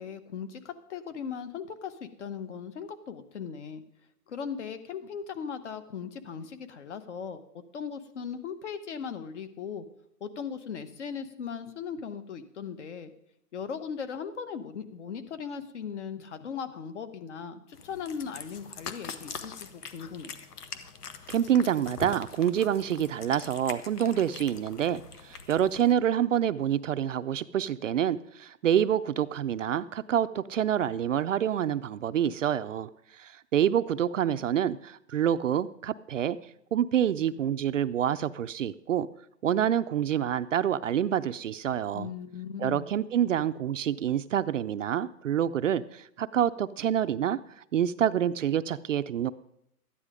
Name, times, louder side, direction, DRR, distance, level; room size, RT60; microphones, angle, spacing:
voice 1, 0.0-3.8 4.3-7.4 7.7-9.8 10.2-13.1 13.5-20.4 41.9-42.9, left 7 dB, 50° left, 11 dB, 1.1 m, -38 dB
Cat, 17.7-25.9, left 6 dB, 75° left, 1.3 m, -43 dB
voice 2, 21.3-36.4 36.7-39.1 39.4-42.1 42.6-49.3, right 9 dB, 55° right, 13 dB, 0.5 m, -27 dB
13.0 x 9.9 x 5.0 m, 0.79 s
hypercardioid pair, 165°, 47 cm